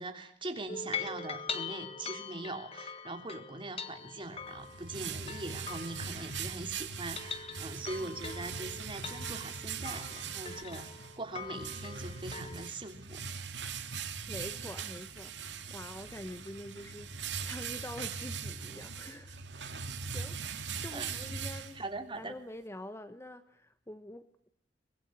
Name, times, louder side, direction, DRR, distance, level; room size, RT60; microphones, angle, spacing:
voice 1, 0.0-10.9 11.2-13.2 20.9-21.1 21.7-22.3, right 2 dB, 30° right, 6 dB, 3.2 m, -41 dB
sound 1, 0.7-6.6 7.0-12.7, left 5 dB, 35° left, 1.7 m, -43 dB
sound 2, 4.3-22.2, right 6 dB, 75° right, 2.4 m, -41 dB
voice 2, 14.3-17.1 17.4-21.8 22.2-24.5, left 1 dB, 15° left, 11 dB, 1.1 m, -46 dB
24.0 x 21.5 x 9.6 m, 0.63 s
head